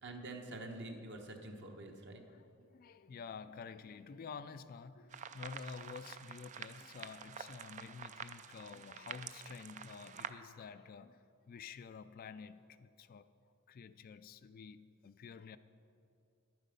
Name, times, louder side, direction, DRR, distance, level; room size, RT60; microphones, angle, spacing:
voice 1, 0.0-2.2, right 2 dB, 55° right, 1.1 m, -46 dB
voice 2, 2.3-13.3 13.7-15.6, left 5 dB, 40° left, 0.3 m, -50 dB
sound 1, 5.1-10.3, right 7 dB, 35° right, 0.3 m, -48 dB
11.0 x 9.2 x 5.2 m
head